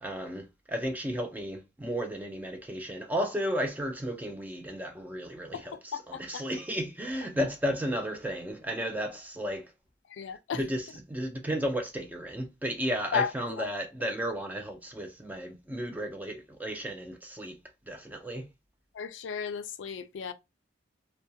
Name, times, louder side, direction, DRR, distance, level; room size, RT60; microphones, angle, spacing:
voice 1, 0.0-9.7 10.5-17.6 17.9-18.5, equal, 10° right, 0.3 m, -33 dB
voice 2, 5.9-6.5 10.1-10.6 13.1-13.7 18.9-20.3, left 6 dB, 80° left, 0.3 m, -34 dB
2.2 x 2.1 x 2.6 m
head